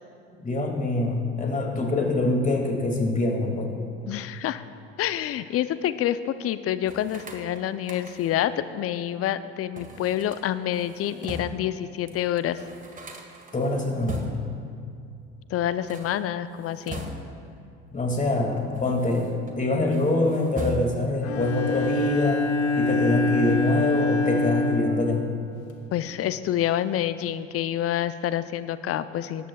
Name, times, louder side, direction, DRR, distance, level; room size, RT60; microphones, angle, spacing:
voice 1, 0.3-3.8 13.5-14.3 17.9-22.4 22.8-25.2, left 2 dB, 25° left, 1 dB, 2.3 m, -25 dB
voice 2, 4.1-4.6 5.0-12.6 15.5-17.1 25.9-29.5, left 11 dB, 45° left, 13 dB, 0.6 m, -27 dB
sound 1, 6.8-8.5 9.7-11.7 12.1-12.2 12.4-14.6 15.7-17.5 18.3-19.5 19.9-21.2, right 1 dB, 25° right, 1.7 m, -39 dB
Bowed string instrument, 21.2-25.8, left 3 dB, 75° left, 1.0 m, -25 dB
18.0 x 13.5 x 2.3 m, 2.4 s
hypercardioid pair, 60°, 33 cm